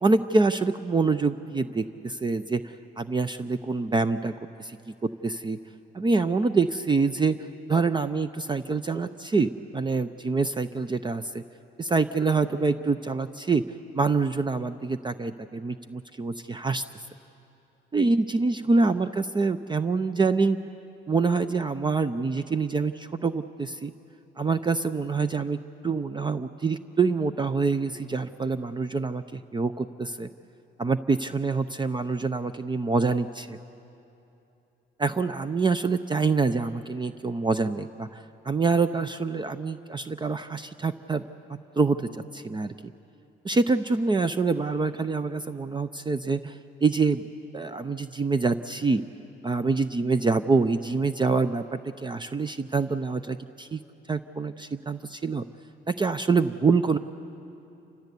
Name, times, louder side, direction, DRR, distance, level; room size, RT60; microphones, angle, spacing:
voice 1, 0.0-4.3 4.6-5.6 6.0-7.4 7.7-11.4 11.8-13.6 13.9-16.8 17.9-20.6 21.1-23.9 24.4-25.6 25.8-30.3 30.8-33.6 35.0-41.2 41.8-42.7 43.4-47.2 47.5-49.0 49.4-53.8 54.1-55.4 55.9-57.0, right 4 dB, 25° right, 11 dB, 0.5 m, -26 dB
28.5 x 15.0 x 8.3 m, 2.9 s
cardioid pair, 90°, 20 cm